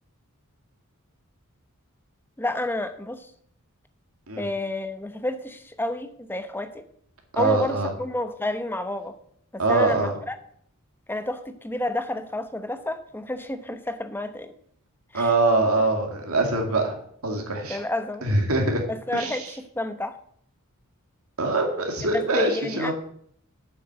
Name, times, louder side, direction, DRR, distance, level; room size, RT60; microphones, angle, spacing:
voice 1, 2.4-3.3 4.4-6.9 7.4-9.1 9.5-10.3 11.1-14.5 15.1-15.3 17.7-18.3 18.9-20.1 22.1-22.9, left 1 dB, 10° left, 9 dB, 0.9 m, -30 dB
voice 2, 7.3-7.9 9.6-10.1 15.1-17.0 17.2-17.8 18.2-18.8 19.1-19.4 21.4-22.9, right 2 dB, 85° right, 2 dB, 2.4 m, -23 dB
8.0 x 6.5 x 7.8 m, 0.64 s
head